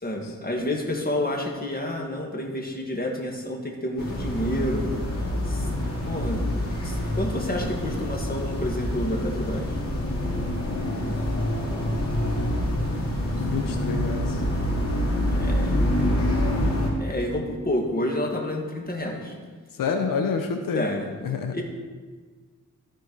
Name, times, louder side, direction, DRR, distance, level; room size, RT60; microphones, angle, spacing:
voice 1, 0.0-4.9 5.4-5.7 6.0-6.5 6.8-9.8 15.3-16.1 17.0-19.3 20.7-21.1 21.5-21.6, left 1 dB, 30° left, 1 dB, 1.8 m, -29 dB
sound 1, 4.0-16.9, left 1 dB, 45° left, 3.1 m, -26 dB
voice 2, 10.7-11.1 13.2-14.4 19.7-20.9 21.2-21.6, left 5 dB, 90° left, 6 dB, 0.7 m, -28 dB
13.5 x 4.6 x 4.6 m, 1.5 s
cardioid pair, 65°, 33 cm